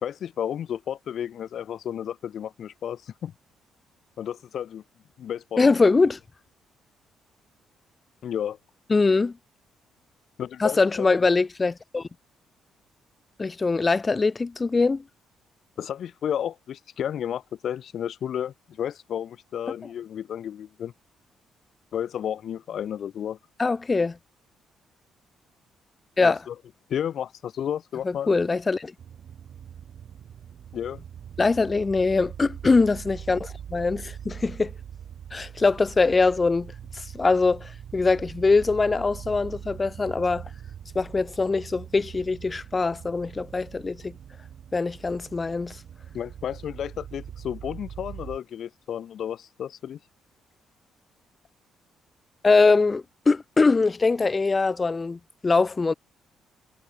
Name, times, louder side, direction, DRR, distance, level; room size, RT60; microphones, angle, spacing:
voice 1, 0.0-3.3 4.2-4.8 5.2-5.7 8.2-8.6 10.4-11.1 15.8-20.9 21.9-23.4 26.2-26.5 26.9-28.3 30.7-31.0 46.1-50.0, left 9 dB, 65° left, 0.7 m, -32 dB
voice 2, 5.6-6.2 8.9-9.3 10.6-12.1 13.4-15.0 23.6-24.2 26.2-26.4 28.0-28.9 31.4-34.7 35.3-40.5 40.9-44.1 44.7-45.8 52.4-55.9, left 3 dB, 25° left, 0.7 m, -22 dB
sound 1, 29.0-48.4, right 9 dB, 60° right, 4.8 m, -42 dB
cardioid pair, 90°, 0 cm